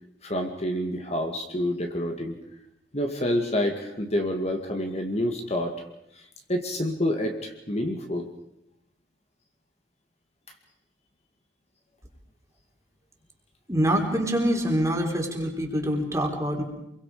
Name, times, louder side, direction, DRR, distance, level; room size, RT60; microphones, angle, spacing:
voice 1, 0.2-2.4 2.9-5.8 6.2-6.3 6.5-8.3, left 1 dB, 35° left, 3 dB, 2.3 m, -28 dB
voice 2, 13.7-16.6, equal, 15° right, 2 dB, 3.9 m, -25 dB
28.0 x 22.5 x 5.1 m, 0.79 s
head